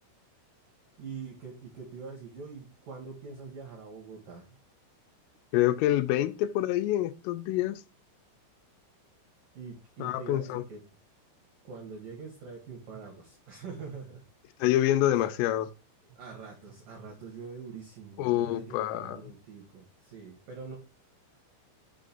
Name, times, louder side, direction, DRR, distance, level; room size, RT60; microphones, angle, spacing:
voice 1, 1.0-4.5 9.5-10.8 11.6-14.2 15.1-15.3 16.1-20.8, right 5 dB, 85° right, 1.9 m, -44 dB
voice 2, 5.5-7.8 10.0-10.6 14.6-15.7 18.2-19.2, left 13 dB, 85° left, 3.2 m, -26 dB
7.4 x 2.5 x 5.1 m
omnidirectional pair, 5.8 m